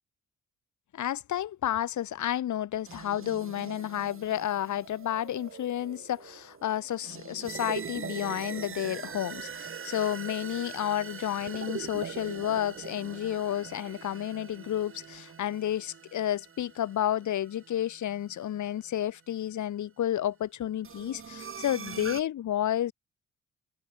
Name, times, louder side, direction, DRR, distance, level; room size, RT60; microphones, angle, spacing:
voice 1, 0.9-22.9, left 11 dB, 70° left, 7.5 m, -31 dB
sound 1, 2.8-18.9 20.8-22.2, right 6 dB, 45° right, 7.6 m, -42 dB
cardioid pair, 90°, 30 cm